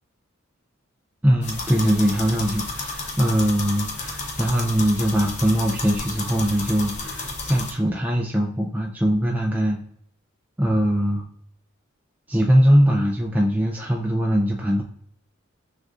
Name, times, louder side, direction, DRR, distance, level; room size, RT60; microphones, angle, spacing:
voice 1, 1.2-9.8 10.6-11.2 12.3-14.8, equal, 10° right, -1 dB, 0.3 m, -21 dB
sound 1, 1.4-7.7, left 3 dB, 35° left, 0.7 m, -32 dB
6.4 x 2.4 x 2.4 m, 0.66 s
head